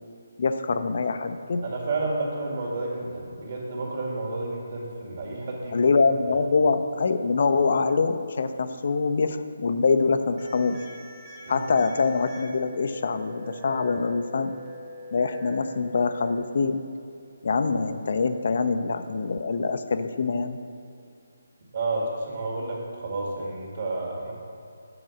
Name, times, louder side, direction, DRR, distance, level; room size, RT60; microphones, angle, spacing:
voice 1, 0.4-1.7 5.7-10.8 11.5-14.5 15.1-16.8 17.4-20.6, left 4 dB, 55° left, 9 dB, 0.5 m, -24 dB
voice 2, 1.6-5.9 11.5-11.7 21.7-24.3, right 2 dB, 50° right, -2 dB, 2.0 m, -31 dB
sound 1, 10.4-16.4, left 1 dB, 25° right, 1.1 m, -43 dB
7.9 x 4.8 x 6.1 m, 2.5 s
hypercardioid pair, 160°, 0 cm